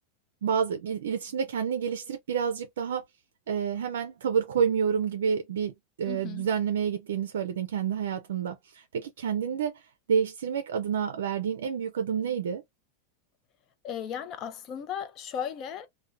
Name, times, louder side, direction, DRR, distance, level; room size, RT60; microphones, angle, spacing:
voice 1, 0.4-3.0 3.5-5.7 6.0-9.8 10.1-12.6, right 7 dB, 85° right, 0.4 m, -29 dB
voice 2, 6.1-6.5 13.8-15.9, left 8 dB, 40° left, 0.5 m, -36 dB
2.4 x 2.1 x 2.5 m
supercardioid pair, 125°, 0 cm